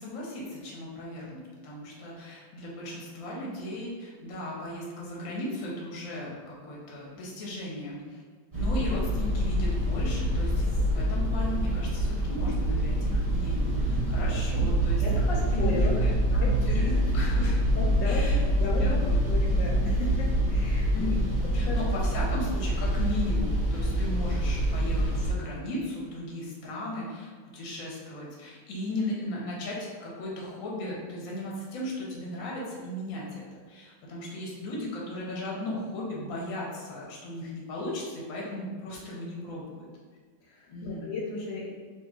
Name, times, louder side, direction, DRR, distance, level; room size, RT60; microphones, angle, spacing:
voice 1, 0.0-8.2 8.5-15.0 15.3-17.6 18.0-18.4 18.7-19.2 20.9-39.9 40.7-41.1, left 1 dB, 55° left, -4 dB, 1.0 m, -36 dB
sound 1, 8.5-25.3, right 1 dB, 30° right, 0.6 m, -26 dB
voice 2, 15.0-15.9 16.4-16.9 17.7-21.1 21.5-21.8 40.4-41.7, left 3 dB, 75° left, -3 dB, 1.2 m, -35 dB
2.9 x 2.5 x 3.5 m, 1.5 s
omnidirectional pair, 2.1 m